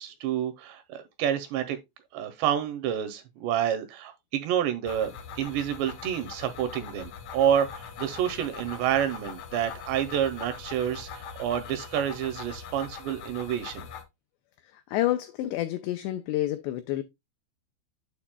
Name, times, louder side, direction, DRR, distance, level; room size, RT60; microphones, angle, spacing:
voice 1, 0.0-1.8 2.1-13.9, right 10 dB, 85° right, 2.6 m, -29 dB
sound 1, 4.8-14.0, left 6 dB, 70° left, 1.7 m, -42 dB
voice 2, 14.7-17.0, left 14 dB, 85° left, 2.4 m, -29 dB
8.7 x 7.0 x 2.2 m
omnidirectional pair, 5.5 m